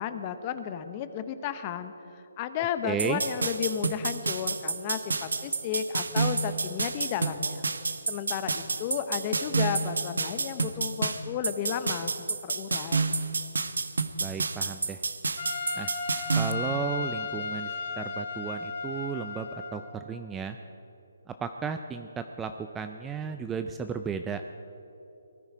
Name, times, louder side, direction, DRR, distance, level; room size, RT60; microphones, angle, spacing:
voice 1, 0.0-7.7 8.1-12.1 12.4-13.1, left 9 dB, 25° left, 10 dB, 0.8 m, -33 dB
voice 2, 2.8-3.2 14.2-15.0 15.8-15.9 16.4-17.7 18.0-20.6 21.4-24.4, right 6 dB, 10° right, 7 dB, 0.4 m, -34 dB
sound 1, 3.0-16.5, right 4 dB, 90° right, 0.9 m, -29 dB
Trumpet, 15.4-20.0, left 4 dB, 50° left, 1.8 m, -35 dB
19.5 x 13.0 x 5.0 m, 3.0 s
hypercardioid pair, 165°, 0 cm